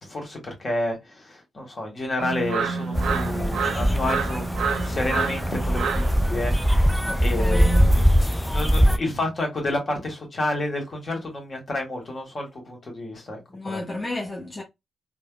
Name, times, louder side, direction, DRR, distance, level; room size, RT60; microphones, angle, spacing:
voice 1, 0.0-4.4 4.8-6.9 7.2-7.9 8.4-13.8, left 2 dB, 45° left, 1.4 m, -30 dB
sound 1, 2.2-8.1, right 5 dB, 70° right, 0.5 m, -30 dB
sound 2, 2.9-9.0, equal, 5° left, 0.4 m, -22 dB
voice 2, 7.0-8.6 13.5-14.6, left 1 dB, 25° left, 0.9 m, -32 dB
3.4 x 2.0 x 2.2 m
hypercardioid pair, 40°, 0 cm